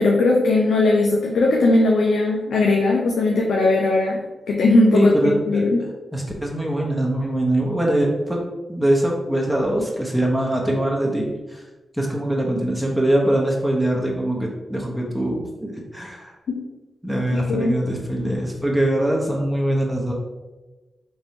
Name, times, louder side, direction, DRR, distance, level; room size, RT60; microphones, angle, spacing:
voice 1, 0.0-5.1 5.5-5.8 16.5-16.6 17.3-17.8, left 2 dB, 80° left, -1 dB, 0.5 m, -18 dB
voice 2, 4.9-5.6 6.1-8.4 8.7-11.6 11.9-16.3 17.0-20.1, right 1 dB, ahead, -2 dB, 0.9 m, -22 dB
3.3 x 2.6 x 4.2 m, 1.1 s
supercardioid pair, 45°, 0 cm